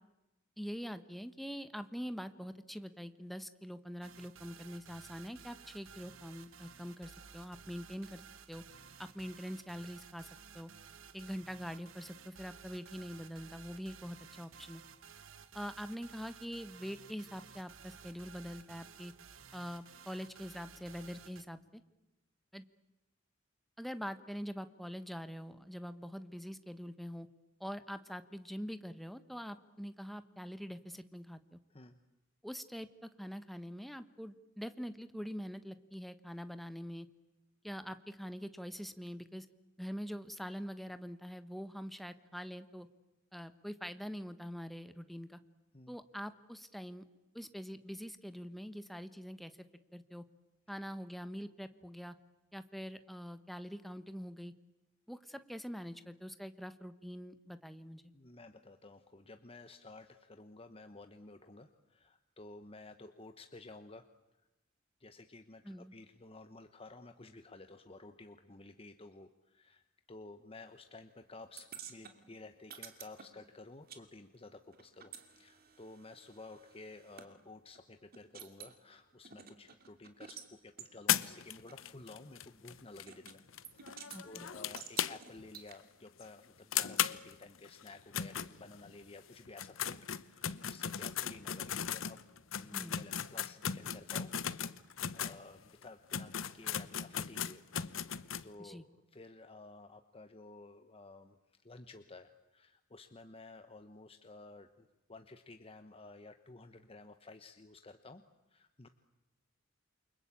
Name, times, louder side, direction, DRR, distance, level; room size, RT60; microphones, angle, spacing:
voice 1, 0.6-8.2 8.5-8.6 9.0-10.7 11.1-14.8 15.5-19.1 19.5-21.8 22.5-22.6 23.8-27.3 27.6-31.6 32.4-37.1 37.6-39.5 39.8-42.9 43.3-45.4 45.9-47.0 47.3-49.5 49.9-50.2 50.7-52.1 52.5-54.5 55.1-58.0 65.6-65.9 84.1-84.5 92.7-93.0 98.6-98.8, equal, ahead, 11 dB, 1.2 m, -44 dB
sound 1, 4.0-21.4, right 6 dB, 70° right, 1.4 m, -55 dB
voice 2, 58.1-64.1 65.0-83.4 83.7-92.2 92.6-94.3 94.8-108.2 108.5-108.9, left 2 dB, 30° left, 8 dB, 1.1 m, -53 dB
sound 2, 71.6-74.0 74.3-77.3 77.7-77.8 78.1-78.8 79.2-80.5 80.8-80.9 81.7-81.8 83.1-83.4 83.6-84.2 84.8-85.7, right 7 dB, 50° right, 2.6 m, -51 dB
sound 3, 81.1-85.5 85.8-85.9 86.2-86.3 86.7-89.0 89.5-95.4 95.8-95.9 96.1-98.5, left 9 dB, 70° left, 0.9 m, -37 dB
29.0 x 24.0 x 8.6 m, 0.98 s
head